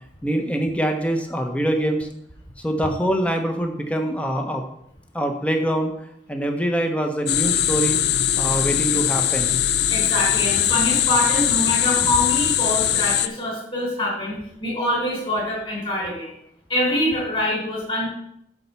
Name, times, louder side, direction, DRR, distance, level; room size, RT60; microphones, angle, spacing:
voice 1, 0.2-2.1 2.6-4.6 5.1-5.9 6.3-8.0 8.4-9.6, right 1 dB, 10° left, 4 dB, 0.8 m, -24 dB
sound 1, 7.3-13.3, left 11 dB, 70° left, 0.4 m, -21 dB
voice 2, 9.9-16.3 16.7-18.1, left 1 dB, 30° left, -6 dB, 4.0 m, -24 dB
8.8 x 4.2 x 6.8 m, 0.76 s
head